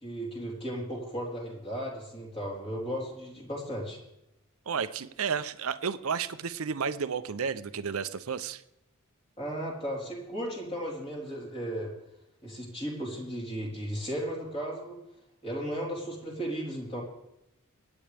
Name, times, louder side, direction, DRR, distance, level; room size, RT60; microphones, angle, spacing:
voice 1, 0.0-4.0 9.4-11.9 12.4-15.0 15.4-17.0, equal, 25° left, -3 dB, 4.1 m, -35 dB
voice 2, 4.7-8.6, right 6 dB, 70° right, 13 dB, 0.7 m, -32 dB
25.0 x 10.0 x 3.5 m, 0.86 s
head